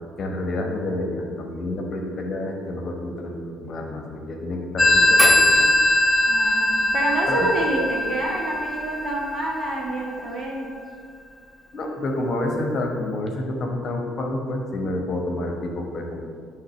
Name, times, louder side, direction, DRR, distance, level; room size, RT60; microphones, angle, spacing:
voice 1, 0.0-5.7 7.3-7.5 11.7-16.2, left 1 dB, 45° left, 2 dB, 1.2 m, -29 dB
Telephone, 4.8-10.1, left 1 dB, 15° left, 0.7 m, -20 dB
voice 2, 6.3-10.7, right 1 dB, 45° right, -1 dB, 1.8 m, -27 dB
9.8 x 3.6 x 6.2 m, 2.2 s
figure-of-eight pair, 50°, 0 cm